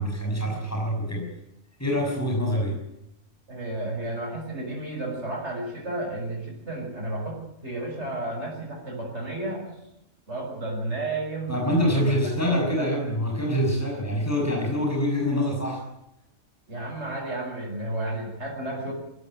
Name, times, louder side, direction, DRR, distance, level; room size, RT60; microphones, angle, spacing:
voice 1, 0.0-1.3 1.8-2.8 11.5-15.8, equal, 10° left, -1 dB, 6.4 m, -25 dB
voice 2, 3.5-9.7 10.3-12.0 12.3-12.9 16.7-18.9, right 2 dB, 60° right, -3 dB, 7.1 m, -32 dB
22.0 x 16.0 x 9.2 m, 0.84 s
omnidirectional pair, 1.3 m